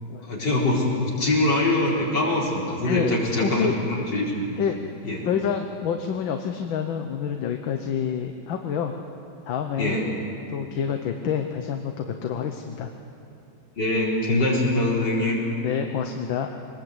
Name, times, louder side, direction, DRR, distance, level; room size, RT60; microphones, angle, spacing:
voice 1, 0.2-4.5 5.0-5.2 9.8-10.1 13.8-15.4, left 2 dB, 55° left, -4 dB, 4.9 m, -23 dB
voice 2, 2.8-3.7 4.6-4.8 5.2-8.9 9.5-10.0 10.5-12.9 15.6-16.5, left 8 dB, 70° left, 5 dB, 1.7 m, -28 dB
23.5 x 20.0 x 8.1 m, 2.7 s
omnidirectional pair, 2.3 m